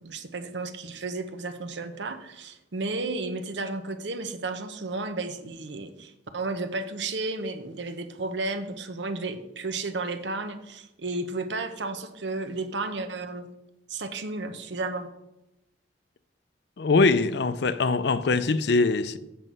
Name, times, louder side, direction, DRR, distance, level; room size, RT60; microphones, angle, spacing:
voice 1, 0.0-13.5 13.9-15.1, right 3 dB, 75° right, 0.9 m, -33 dB
voice 2, 16.8-19.2, left 3 dB, 65° left, 0.5 m, -22 dB
7.7 x 6.2 x 5.4 m
head